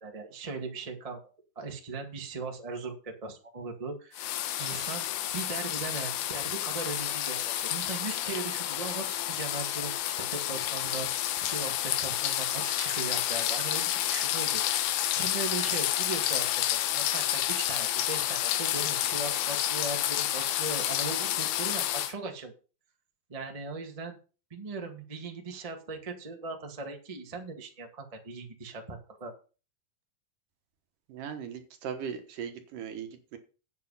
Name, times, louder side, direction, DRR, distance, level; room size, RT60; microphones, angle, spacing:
voice 1, 0.0-1.2 1.5-5.1 5.3-14.6 15.1-22.5 23.3-24.2 24.5-29.3, right 3 dB, 25° right, 3 dB, 0.7 m, -39 dB
sound 1, 4.1-22.1, left 13 dB, 85° left, 2.7 m, -30 dB
voice 2, 31.1-33.4, right 7 dB, 65° right, 7 dB, 2.6 m, -38 dB
8.5 x 8.3 x 5.6 m, 0.35 s
omnidirectional pair, 4.4 m